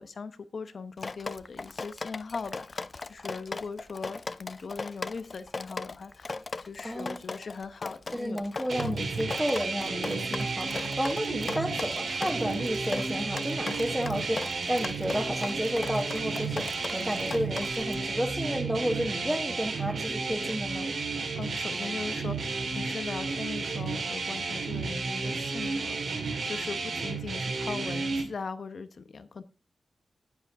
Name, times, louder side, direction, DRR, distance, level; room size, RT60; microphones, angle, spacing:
voice 1, 0.0-8.5 8.8-9.1 21.4-29.4, left 4 dB, 60° left, 0.9 m, -39 dB
Drip, 1.0-18.0, left 3 dB, 40° left, 0.4 m, -38 dB
voice 2, 6.8-7.2 8.1-20.9, equal, ahead, 1.5 m, -32 dB
sound 1, 8.7-28.2, right 4 dB, 75° right, 2.5 m, -32 dB
10.0 x 8.3 x 3.7 m
wide cardioid pair, 105°, 0 cm